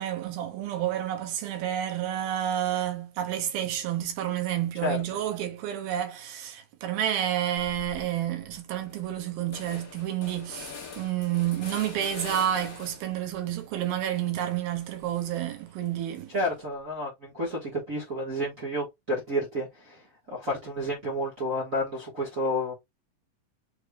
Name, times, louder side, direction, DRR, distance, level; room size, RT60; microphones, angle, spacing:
voice 1, 0.0-16.4, right 11 dB, 90° right, 2.9 m, -30 dB
sound 1, 7.6-8.0 8.4-8.5 8.8-13.2 13.6-15.7, left 5 dB, 45° left, 1.1 m, -44 dB
voice 2, 16.3-22.7, equal, 60° right, 0.8 m, -30 dB
6.4 x 3.3 x 2.3 m
omnidirectional pair, 4.2 m